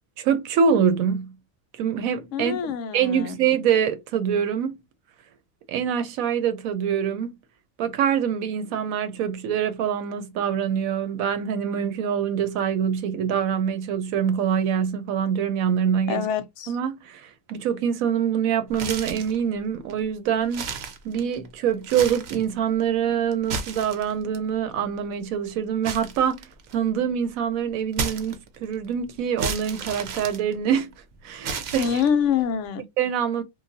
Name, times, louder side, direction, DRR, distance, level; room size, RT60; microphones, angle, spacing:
voice 1, 0.2-1.3 1.8-4.8 5.7-7.4 7.8-16.3 16.7-20.8 21.0-26.5 26.7-30.9 31.2-32.0 33.0-33.4, right 8 dB, 80° right, 1.0 m, -25 dB
voice 2, 2.3-3.4 16.1-16.7 31.8-32.8, left 7 dB, 65° left, 0.8 m, -25 dB
sound 1, 18.7-19.4 19.9-20.0 20.4-21.5 21.8-22.5 23.3-24.4 25.8-26.9 27.9-28.7 29.4-30.9 31.4-32.3, right 4 dB, 60° right, 0.8 m, -32 dB
3.1 x 2.3 x 2.5 m
omnidirectional pair, 1.5 m